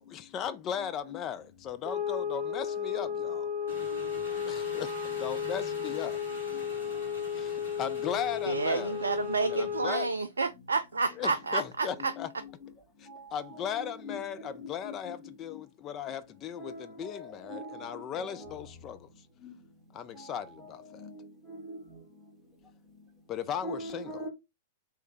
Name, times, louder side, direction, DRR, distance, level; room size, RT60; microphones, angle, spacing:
voice 1, 0.0-3.5 4.5-6.2 7.3-9.1 9.5-10.1 11.1-12.3 13.0-19.3 19.9-21.1 23.3-24.2, left 8 dB, 25° left, 0.4 m, -37 dB
sound 1, 1.8-10.2, left 7 dB, 10° right, 0.9 m, -34 dB
Engine, 3.7-10.2, left 1 dB, 65° left, 1.6 m, -46 dB
voice 2, 8.5-12.1, right 4 dB, 70° right, 0.3 m, -30 dB
voice 3, 13.7-14.2 14.6-15.1 16.6-17.7 18.2-18.5 21.0-21.1 21.5-21.8 23.6-24.3, left 1 dB, 5° left, 1.6 m, -41 dB
3.2 x 3.1 x 3.5 m
figure-of-eight pair, 100°, 0 cm